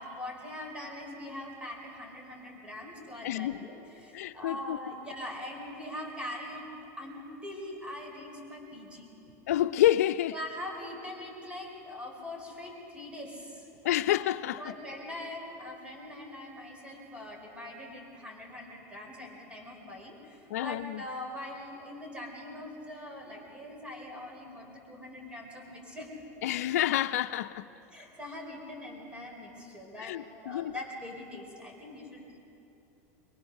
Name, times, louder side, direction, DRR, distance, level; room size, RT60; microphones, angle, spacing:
voice 1, 0.0-6.7 7.0-9.1 10.3-13.7 14.5-26.1 27.9-30.2 30.4-32.4, left 1 dB, 15° right, 5.0 m, -42 dB
voice 2, 3.2-3.7 4.1-4.8 9.5-10.3 13.8-14.6 20.5-21.0 26.4-27.6 30.0-30.7, left 13 dB, 85° left, 0.5 m, -28 dB
24.5 x 22.0 x 6.5 m
supercardioid pair, 125°, 8 cm